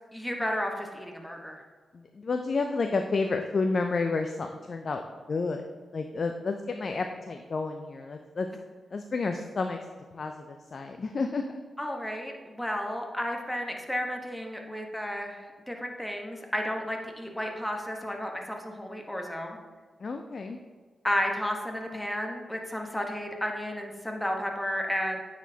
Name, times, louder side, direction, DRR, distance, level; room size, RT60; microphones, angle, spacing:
voice 1, 0.1-1.6 11.8-19.6 21.0-25.2, equal, 10° left, 2 dB, 1.1 m, -32 dB
voice 2, 1.9-5.0 5.3-5.6 5.9-8.5 8.9-9.8 10.1-11.4 20.0-20.6, left 4 dB, 55° left, 5 dB, 0.4 m, -30 dB
8.9 x 4.1 x 2.8 m, 1.4 s
cardioid pair, 50°, 0 cm